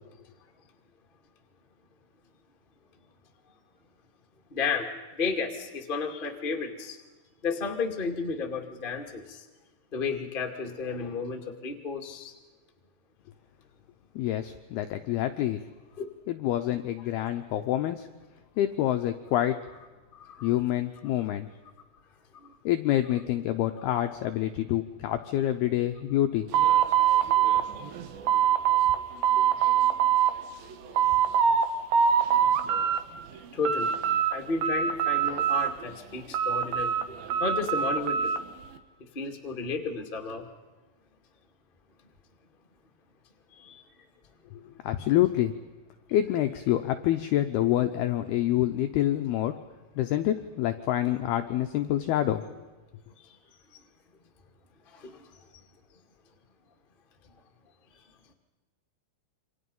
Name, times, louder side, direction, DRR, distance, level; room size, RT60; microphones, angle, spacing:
voice 1, 4.5-4.9 5.2-7.0 7.4-9.2 9.9-12.3 20.4-20.5 25.8-25.9 33.5-34.0 34.3-38.3 39.1-40.4 43.6-43.7 55.0-55.1, left 4 dB, 50° left, 2 dB, 0.6 m, -32 dB
voice 2, 14.2-15.6 16.3-18.1 18.6-19.6 20.4-21.5 22.7-26.5 44.8-45.5 46.1-49.5 50.0-52.4, left 13 dB, 90° left, 7 dB, 2.2 m, -27 dB
sound 1, 26.5-29.0 29.2-30.3 30.7-31.7 31.9-33.0 33.4-34.3 34.6-35.9 36.3-38.4, right 9 dB, 65° right, 2.4 m, -23 dB
28.5 x 25.5 x 5.5 m, 1.2 s
omnidirectional pair, 5.7 m